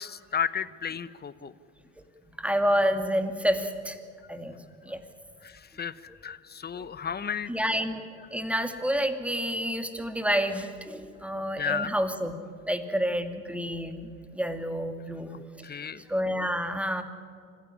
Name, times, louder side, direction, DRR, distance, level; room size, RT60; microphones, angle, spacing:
voice 1, 0.0-1.5 5.4-7.5 11.6-11.9 15.3-16.0, left 7 dB, 25° left, 16 dB, 1.0 m, -33 dB
voice 2, 2.4-4.0 4.3-4.6 4.8-5.0 6.7-6.9 7.5-8.0 8.3-12.3 12.7-15.3 15.6-15.7 16.1-17.0, equal, 5° right, 7 dB, 2.4 m, -29 dB
26.0 x 15.0 x 9.9 m, 2.3 s
hypercardioid pair, 80°, 39 cm